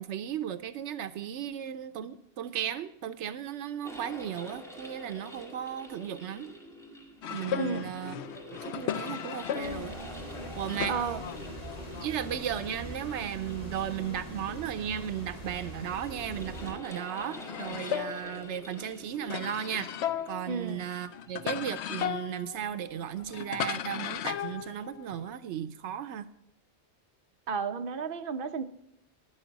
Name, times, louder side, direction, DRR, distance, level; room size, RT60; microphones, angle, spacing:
voice 1, 0.0-6.5 7.3-8.2 8.5-10.0 10.6-11.0 12.0-19.9 20.3-26.3, right 10 dB, 85° right, 12 dB, 0.9 m, -35 dB
sound 1, 3.8-22.5, equal, ahead, 2.0 m, -48 dB
sound 2, 7.2-12.5 12.8-16.2 16.5-25.3, left 9 dB, 75° left, 0.9 m, -38 dB
voice 2, 7.6-7.9 10.9-11.2 20.5-20.9 27.5-28.6, right 5 dB, 55° right, 7 dB, 1.0 m, -33 dB
sound 3, 9.6-16.7, right 1 dB, 35° left, 2.4 m, -42 dB
12.5 x 10.5 x 3.9 m, 0.81 s
omnidirectional pair, 1.2 m